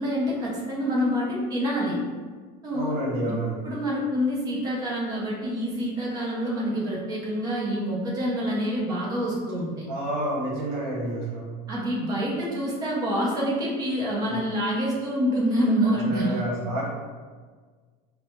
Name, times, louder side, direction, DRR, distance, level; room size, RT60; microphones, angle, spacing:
voice 1, 0.0-2.0 2.6-2.9 3.3-3.4 3.6-9.9 11.7-16.4, equal, 20° right, -5 dB, 0.7 m, -26 dB
voice 2, 2.7-3.6 9.9-11.5 14.2-14.4 16.0-16.9, right 1 dB, 60° right, -3 dB, 1.1 m, -29 dB
4.2 x 2.1 x 3.0 m, 1.5 s
cardioid pair, 175°, 21 cm